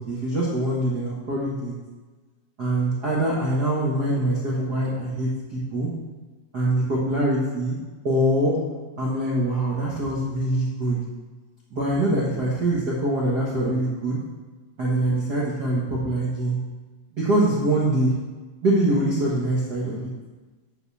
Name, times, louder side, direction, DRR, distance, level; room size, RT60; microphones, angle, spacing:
voice 1, 0.1-1.7 2.6-5.9 6.5-7.7 8.0-8.5 9.0-11.0 11.7-14.2 14.8-16.6 17.1-18.1 18.6-20.1, right 1 dB, 80° right, -7 dB, 0.8 m, -24 dB
10.0 x 4.4 x 7.0 m, 1.3 s
omnidirectional pair, 4.2 m